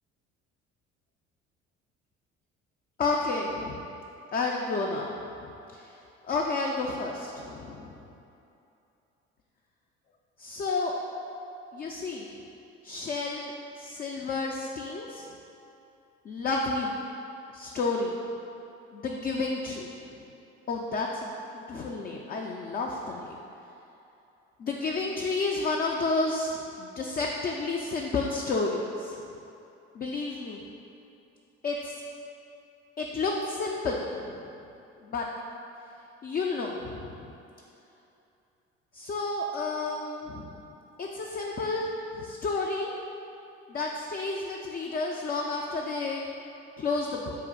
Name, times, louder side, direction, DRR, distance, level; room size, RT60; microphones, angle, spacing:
voice 1, 3.0-3.8 4.3-5.9 6.3-7.9 10.4-10.9 11.7-12.3 12.8-15.3 16.2-17.0 17.5-18.2 18.9-19.9 20.7-23.4 24.6-29.2 29.9-30.6 31.6-31.9 33.0-34.5 35.0-35.2 36.2-37.3 38.9-40.6 41.0-42.9 43.7-46.3 46.8-47.4, left 3 dB, 30° left, -1 dB, 0.3 m, -31 dB
4.1 x 2.5 x 3.7 m, 2.8 s
hypercardioid pair, 60°, 31 cm